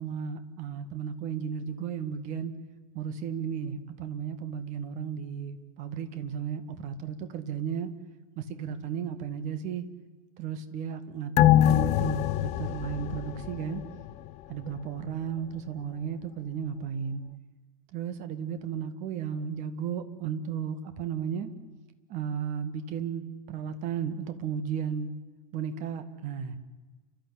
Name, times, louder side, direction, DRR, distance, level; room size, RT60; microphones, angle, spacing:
voice 1, 0.0-2.5 2.9-7.9 8.4-9.8 10.4-13.8 14.5-17.2 17.9-21.5 22.1-25.1 25.5-26.6, right 7 dB, 40° right, 10 dB, 2.0 m, -34 dB
sound 1, 11.4-14.3 14.6-14.7, left 14 dB, 40° left, 0.7 m, -24 dB
30.0 x 13.0 x 8.7 m, 1.2 s
figure-of-eight pair, 85°, 18 cm